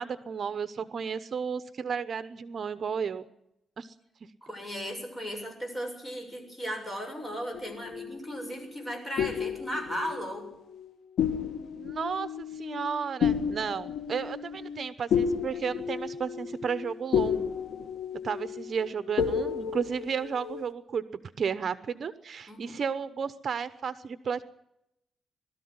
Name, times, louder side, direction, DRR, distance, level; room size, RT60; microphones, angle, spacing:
voice 1, 0.0-3.2 3.8-3.9 11.8-17.5 18.2-21.0 21.4-24.4, right 6 dB, 50° right, 13 dB, 0.9 m, -33 dB
voice 2, 4.4-10.5 22.5-22.7, equal, 20° left, 3 dB, 6.8 m, -36 dB
sound 1, 7.5-8.6 9.2-10.9 11.2-20.7, left 7 dB, 85° left, 1.4 m, -32 dB
20.5 x 13.5 x 9.6 m, 0.83 s
cardioid pair, 115°, 0 cm